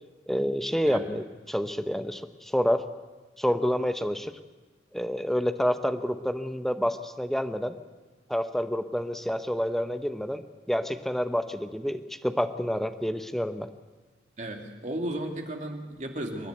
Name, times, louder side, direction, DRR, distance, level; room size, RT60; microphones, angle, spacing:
voice 1, 0.3-2.8 3.4-4.3 4.9-7.7 8.3-10.4 10.7-13.7, equal, ahead, 8 dB, 0.8 m, -28 dB
voice 2, 14.4-16.5, right 1 dB, 40° right, 2 dB, 2.5 m, -34 dB
26.5 x 10.5 x 9.4 m, 1.3 s
head